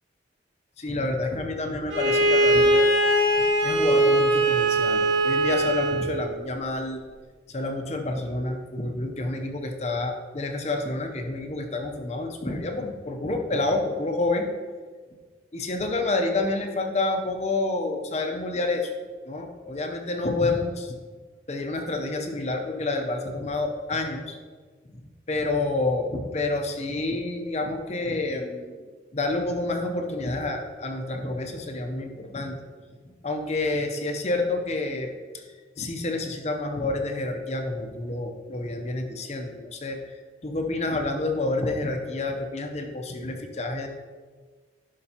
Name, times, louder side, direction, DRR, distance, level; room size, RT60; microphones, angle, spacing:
voice 1, 0.8-2.9 3.6-7.0 7.5-14.5 15.5-18.9 19.3-20.9 21.5-24.4 25.3-28.9 29.1-32.6 33.2-35.1 35.3-35.4 35.8-40.0 40.4-43.9, left 2 dB, 35° left, 4 dB, 0.7 m, -28 dB
Bowed string instrument, 1.9-6.1, right 1 dB, 75° right, 1.1 m, -21 dB
11.0 x 5.7 x 2.9 m, 1.5 s
head